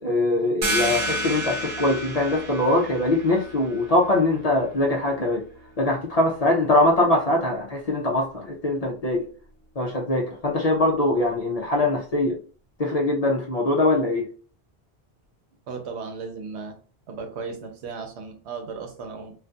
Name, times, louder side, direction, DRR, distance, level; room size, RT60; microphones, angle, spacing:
voice 1, 0.0-5.4 5.8-9.3 9.8-12.4 12.8-14.3, left 2 dB, 50° left, -1 dB, 0.5 m, -22 dB
sound 1, 0.6-6.0, right 1 dB, 50° right, 0.7 m, -31 dB
voice 2, 15.7-16.8 17.1-19.3, right 5 dB, 90° right, 4 dB, 1.0 m, -35 dB
2.6 x 2.4 x 2.2 m, 0.41 s
omnidirectional pair, 1.1 m